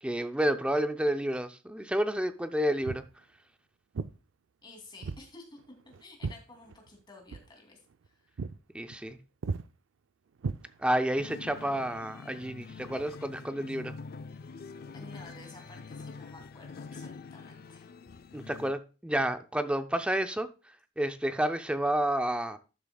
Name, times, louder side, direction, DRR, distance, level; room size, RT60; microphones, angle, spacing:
voice 1, 0.0-3.0 8.7-9.2 10.8-13.9 18.3-20.5 21.0-22.6, right 1 dB, 5° right, 0.5 m, -30 dB
Walk footsteps, 2.8-3.1 3.9-4.2 5.0-5.3 5.6-7.0 7.3-7.5 7.9-8.1 8.4-8.6 8.9-9.1 9.4-9.7 10.4-11.1, right 4 dB, 75° right, 0.4 m, -36 dB
voice 2, 4.6-5.7 6.0-8.3 14.9-17.9, left 2 dB, 25° left, 2.7 m, -52 dB
sound 1, 11.2-18.7, left 4 dB, 50° left, 0.4 m, -45 dB
12.0 x 6.9 x 2.3 m
head